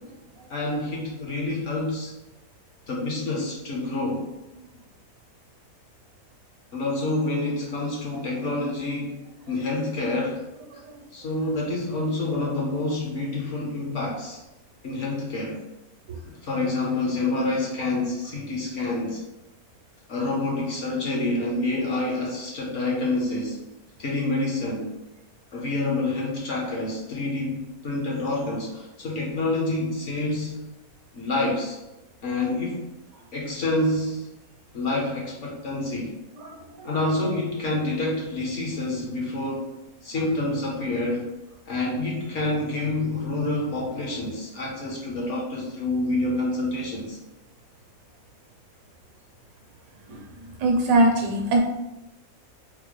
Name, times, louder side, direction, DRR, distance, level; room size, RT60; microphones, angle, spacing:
voice 1, 0.5-2.1 2.9-4.3 6.7-10.4 10.7-10.8 11.1-14.4 14.8-15.7 16.2-19.2 20.1-23.7 24.0-24.9 25.5-30.6 31.1-31.8 32.2-32.9 33.3-34.3 34.7-36.2 36.8-39.7 40.0-41.3 41.7-47.2, left 2 dB, 60° left, -3 dB, 1.1 m, -27 dB
voice 2, 50.6-51.6, right 1 dB, 70° right, 1 dB, 1.0 m, -20 dB
3.9 x 2.0 x 3.0 m, 0.93 s
omnidirectional pair, 1.5 m